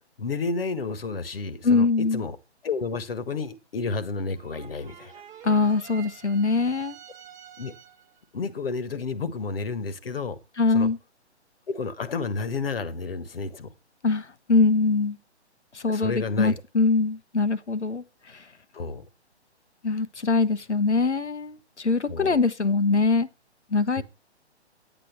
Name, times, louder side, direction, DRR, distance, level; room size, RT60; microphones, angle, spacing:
voice 1, 0.2-2.4 2.6-5.2 7.6-7.7 8.3-10.4 10.7-10.9 11.7-13.7 15.8-16.6 18.7-19.0 22.0-22.4 23.9-24.0, left 4 dB, 55° left, 1.4 m, -31 dB
voice 2, 1.6-2.2 5.4-7.0 10.6-11.0 14.0-15.2 15.7-18.4 19.8-23.3 23.7-24.0, left 4 dB, 85° left, 1.0 m, -23 dB
sound 1, 4.3-8.2, right 9 dB, 10° right, 0.9 m, -48 dB
9.6 x 9.3 x 4.5 m
figure-of-eight pair, 135°, 34 cm